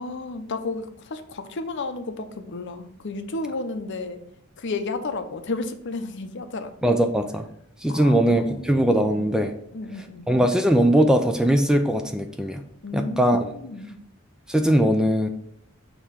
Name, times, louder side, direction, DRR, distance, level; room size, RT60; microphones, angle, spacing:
voice 1, 0.0-4.2 4.6-6.7 7.9-9.3 9.7-10.3 12.8-14.0, left 3 dB, 60° left, 8 dB, 0.6 m, -32 dB
voice 2, 6.8-7.5 7.8-9.5 10.3-12.6 12.9-13.5 14.5-15.3, right 1 dB, 5° right, 6 dB, 0.3 m, -20 dB
6.5 x 3.0 x 5.0 m, 0.72 s
head